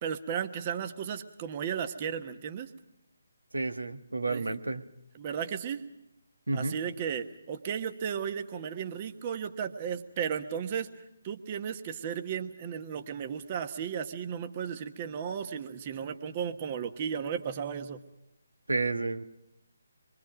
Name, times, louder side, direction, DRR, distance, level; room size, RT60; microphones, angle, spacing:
voice 1, 0.0-2.7 4.3-4.6 5.1-5.8 6.5-10.9 11.2-18.0, right 7 dB, 30° right, 8 dB, 1.3 m, -34 dB
voice 2, 3.5-4.8 6.5-6.8 18.7-19.2, right 3 dB, 75° right, 7 dB, 1.4 m, -31 dB
26.5 x 23.5 x 5.1 m, 0.85 s
figure-of-eight pair, 145°, 0 cm